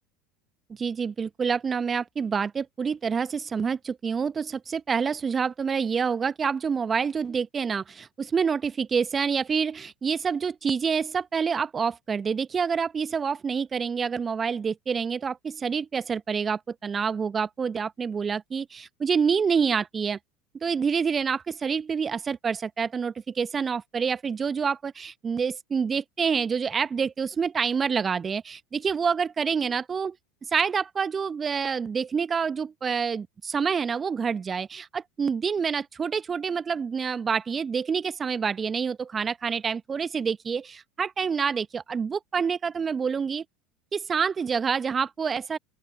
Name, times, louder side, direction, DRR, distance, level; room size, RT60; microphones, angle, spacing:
voice 1, 0.7-20.2 20.6-30.2 30.5-43.4 43.9-45.6, right 6 dB, 25° right, 0.9 m, -27 dB
open air
figure-of-eight pair, 75°, 0 cm